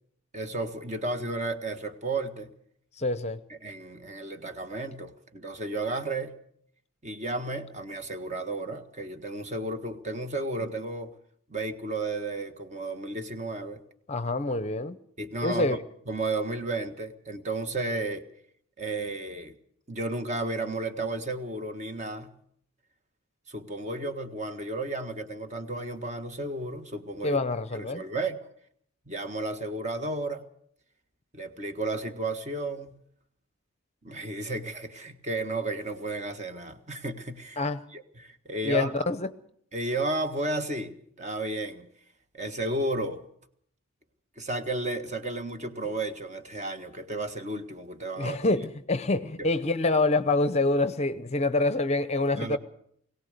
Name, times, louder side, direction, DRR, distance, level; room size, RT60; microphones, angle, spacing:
voice 1, 0.3-2.5 3.5-6.3 7.0-11.1 11.5-13.8 15.2-15.8 16.1-18.2 18.8-19.5 19.9-22.3 23.5-27.4 27.7-28.5 29.1-30.4 31.3-33.0 34.0-37.6 37.9-39.1 39.7-41.9 42.3-43.2 44.4-48.4 49.4-49.5 52.3-52.6, right 2 dB, 30° right, 7 dB, 1.7 m, -33 dB
voice 2, 3.0-3.4 14.1-15.0 15.4-15.8 27.2-28.0 37.6-37.8 38.6-39.3 48.2-52.6, left 2 dB, 30° left, 14 dB, 0.7 m, -26 dB
22.0 x 17.5 x 6.7 m, 0.66 s
head